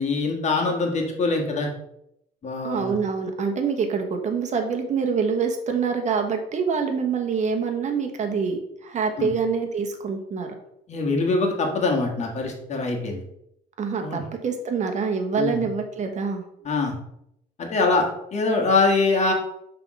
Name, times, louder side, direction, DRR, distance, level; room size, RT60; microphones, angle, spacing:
voice 1, 0.0-1.7 2.4-2.9 9.2-9.3 10.9-13.2 14.0-14.2 15.4-15.6 16.6-16.9 17.6-19.3, left 3 dB, 40° left, 1 dB, 1.5 m, -23 dB
voice 2, 2.6-10.5 13.8-16.4, right 5 dB, 45° right, 5 dB, 1.1 m, -26 dB
6.0 x 3.5 x 4.8 m, 0.78 s
cardioid pair, 110°, 17 cm